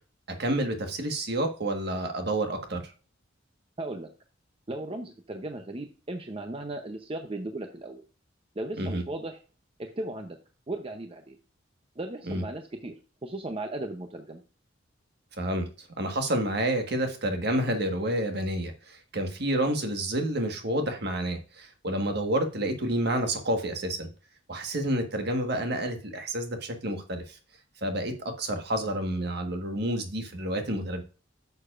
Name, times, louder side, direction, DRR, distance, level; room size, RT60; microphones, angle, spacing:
voice 1, 0.4-2.9 8.8-9.0 12.3-12.4 15.4-15.7 16.0-24.1 24.5-27.4 27.8-31.0, right 1 dB, 55° right, 5 dB, 1.5 m, -29 dB
voice 2, 3.8-4.1 4.7-8.0 8.6-9.4 9.8-10.4 10.7-11.4 12.0-12.9 13.2-14.4, right 2 dB, 30° right, 5 dB, 0.7 m, -36 dB
9.4 x 6.8 x 2.5 m, 0.35 s
head